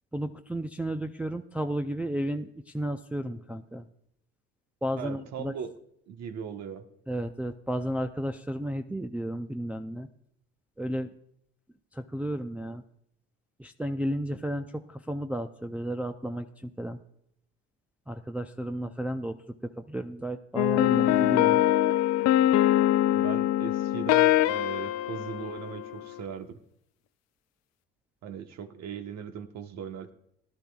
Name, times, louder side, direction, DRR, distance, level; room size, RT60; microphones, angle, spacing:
voice 1, 0.1-3.8 4.8-5.5 7.1-10.1 10.8-11.1 11.9-12.8 13.6-17.0 18.1-19.4 19.8-21.7, equal, 5° right, 5 dB, 0.4 m, -33 dB
voice 2, 5.0-5.7 6.1-6.9 23.1-26.6 28.2-30.1, right 7 dB, 60° right, 7 dB, 1.2 m, -39 dB
sound 1, 20.6-26.2, left 13 dB, 60° left, 0.5 m, -23 dB
17.5 x 11.5 x 2.3 m, 0.73 s
supercardioid pair, 85°, 30 cm